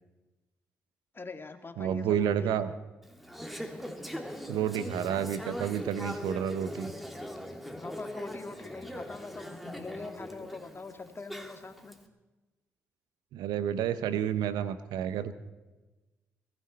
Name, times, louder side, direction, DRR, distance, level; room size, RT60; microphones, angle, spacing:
voice 1, 1.1-2.6 7.7-12.0, left 3 dB, 30° left, 7 dB, 2.2 m, -43 dB
voice 2, 1.8-2.7 4.5-6.9 13.3-15.3, right 9 dB, 70° right, 12 dB, 0.9 m, -30 dB
Conversation / Chatter, 3.0-11.9, equal, ahead, 2.5 m, -41 dB
22.0 x 15.5 x 4.3 m, 1.1 s
hypercardioid pair, 45°, 7 cm